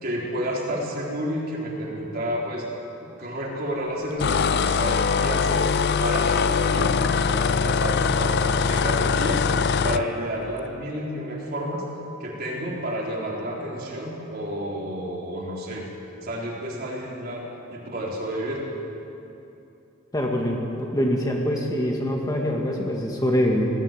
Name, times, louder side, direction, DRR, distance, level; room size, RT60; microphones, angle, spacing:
voice 1, 0.0-2.7 3.0-11.8 12.2-15.9 16.2-18.6, equal, 45° right, -3 dB, 4.2 m, -30 dB
sound 1, 4.2-10.0, left 5 dB, 50° left, 0.5 m, -22 dB
voice 2, 20.1-23.7, equal, 20° left, 0 dB, 1.9 m, -24 dB
19.5 x 15.0 x 9.2 m, 2.9 s
head